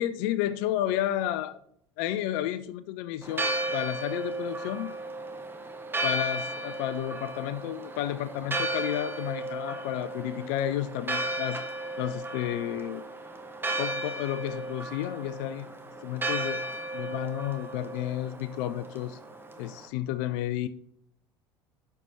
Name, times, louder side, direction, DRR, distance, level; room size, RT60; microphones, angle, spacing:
voice 1, 0.0-1.6 2.0-4.9 6.0-11.6 12.0-13.0 13.8-15.7 16.0-19.2 19.6-20.7, left 12 dB, 55° left, 13 dB, 0.5 m, -31 dB
Church bell, 3.2-19.9, right 2 dB, 15° right, 1.1 m, -35 dB
12.0 x 4.7 x 2.7 m, 0.66 s
figure-of-eight pair, 70°, 15 cm